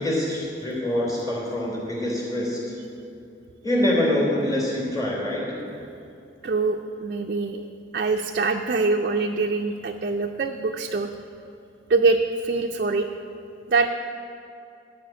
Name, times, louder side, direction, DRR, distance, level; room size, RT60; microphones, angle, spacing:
voice 1, 0.0-2.6 3.6-5.4, left 1 dB, 20° left, -3 dB, 3.3 m, -25 dB
voice 2, 6.4-7.6 7.9-11.1 11.9-13.1 13.7-13.9, right 3 dB, 50° right, 2 dB, 0.5 m, -24 dB
12.5 x 5.1 x 8.9 m, 2.7 s
head